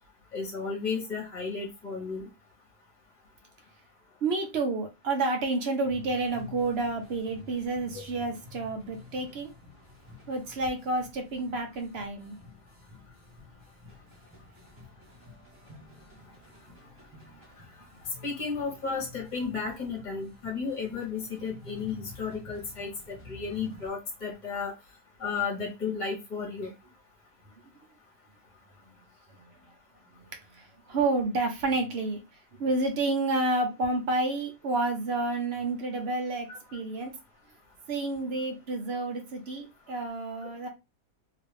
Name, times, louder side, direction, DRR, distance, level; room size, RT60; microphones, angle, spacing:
voice 1, 0.3-2.3 18.0-24.7 25.2-26.7 36.5-36.8, left 5 dB, 30° left, -1 dB, 1.3 m, -33 dB
voice 2, 4.2-9.5 10.3-12.4 28.8-29.0 29.3-29.4 30.1-30.3 30.5-32.2 32.6-36.5 36.7-37.1 37.9-40.7, right 2 dB, 50° right, 3 dB, 0.9 m, -30 dB
sound 1, 5.8-23.9, left 3 dB, 30° right, 1.4 m, -51 dB
3.0 x 2.8 x 3.3 m, 0.25 s
omnidirectional pair, 1.7 m